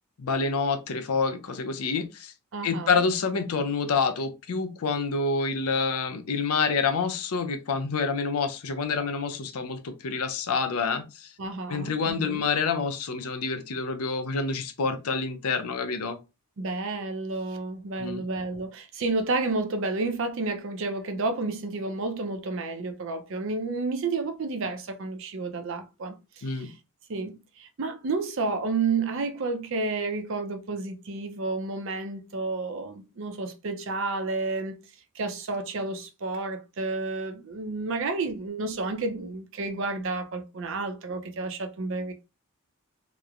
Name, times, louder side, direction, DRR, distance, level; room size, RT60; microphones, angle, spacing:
voice 1, 0.2-2.3 2.6-11.3 11.7-16.2 18.0-18.2 26.4-26.7, left 4 dB, 80° left, 0.5 m, -27 dB
voice 2, 2.5-3.0 11.4-12.4 16.6-26.7 27.1-34.8 35.2-42.1, right 3 dB, 60° right, 0.5 m, -31 dB
2.9 x 2.1 x 2.4 m
head